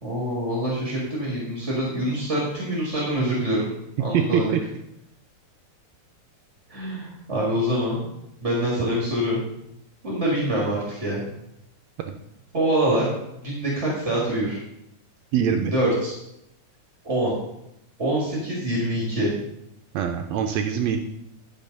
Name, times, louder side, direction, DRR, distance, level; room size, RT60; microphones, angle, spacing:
voice 1, 0.0-3.7 4.0-4.5 6.7-8.0 8.4-9.4 10.0-11.2 12.5-13.1 13.3-14.6 15.7-16.1 17.0-17.4 18.0-19.3, right 1 dB, 25° right, -4 dB, 1.7 m, -25 dB
voice 2, 4.1-4.6 15.3-15.7 19.9-21.0, right 8 dB, 75° right, 5 dB, 1.6 m, -23 dB
11.0 x 5.5 x 5.2 m, 0.83 s
omnidirectional pair, 3.5 m